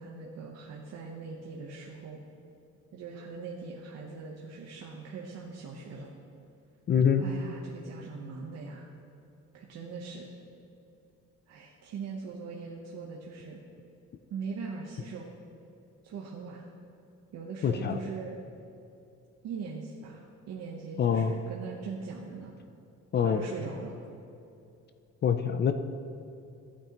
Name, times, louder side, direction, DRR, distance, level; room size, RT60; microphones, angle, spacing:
voice 1, 0.0-2.2 2.9-6.1 7.2-8.9 9.5-10.3 11.5-13.6 14.3-15.3 16.0-16.6 17.3-18.4 19.4-22.5 23.1-24.0, right 5 dB, 60° right, -2 dB, 1.0 m, -41 dB
voice 2, 6.9-7.2 17.6-18.0 21.0-21.3 23.1-23.4 25.2-25.7, left 8 dB, 35° left, 9 dB, 0.4 m, -25 dB
14.5 x 8.7 x 3.0 m, 2.7 s
cardioid pair, 160°, 30 cm